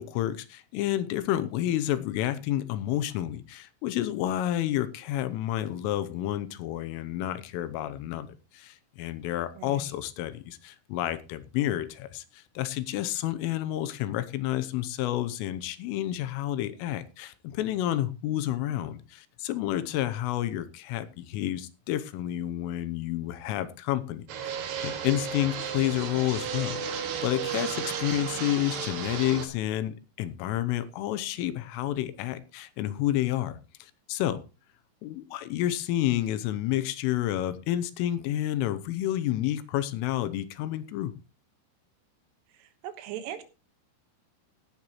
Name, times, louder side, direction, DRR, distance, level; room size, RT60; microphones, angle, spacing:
voice 1, 0.0-8.3 8.5-24.2 24.8-26.8 27.2-33.6 34.1-34.4 35.0-41.1, left 13 dB, 80° left, 13 dB, 3.3 m, -30 dB
voice 2, 9.6-9.9 26.0-26.1 42.6-43.4, right 10 dB, 80° right, 9 dB, 3.7 m, -40 dB
Fixed-wing aircraft airplane, 24.3-29.5, right 7 dB, 60° right, 3.6 m, -33 dB
17.5 x 10.0 x 3.1 m, 0.30 s
omnidirectional pair, 5.9 m